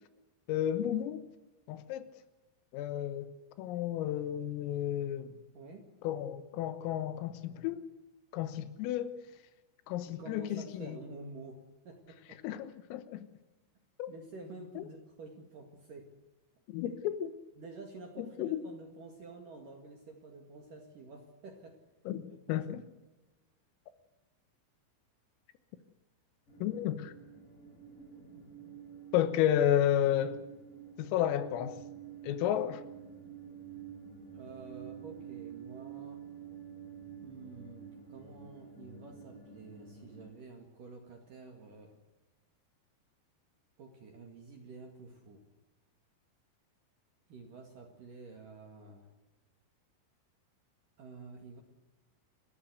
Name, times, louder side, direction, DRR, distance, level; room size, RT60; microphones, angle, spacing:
voice 1, 0.5-1.3 1.7-2.1 2.7-3.3 3.6-5.3 6.0-7.8 8.3-9.2 9.9-11.0 12.4-13.3 14.0-14.1 14.8-14.9 16.7-17.3 18.2-18.6 22.1-22.2 22.5-22.8 26.6-27.1 29.1-30.4 31.0-31.8 32.2-32.8, left 11 dB, 85° left, 3.8 m, -32 dB
voice 2, 5.5-5.9 10.1-12.4 14.1-16.1 17.6-21.8 22.3-22.6 34.3-36.2 37.2-42.0 43.8-45.4 47.3-49.1 51.0-51.6, right 3 dB, 55° right, 2.9 m, -49 dB
sound 1, 26.5-40.3, right 8 dB, 45° left, 5.4 m, -49 dB
29.0 x 12.5 x 8.0 m
omnidirectional pair, 5.9 m